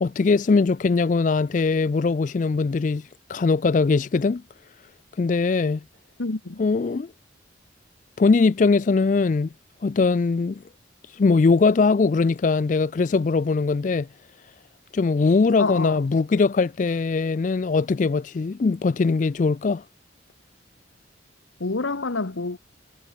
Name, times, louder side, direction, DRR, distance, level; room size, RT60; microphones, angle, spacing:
voice 1, 0.0-4.4 5.2-5.8 6.6-7.1 8.2-9.5 9.8-10.6 11.1-14.1 14.9-19.8, left 4 dB, 40° left, 0.3 m, -21 dB
voice 2, 6.2-6.6 15.6-16.0 21.6-22.6, left 3 dB, 85° left, 1.2 m, -27 dB
head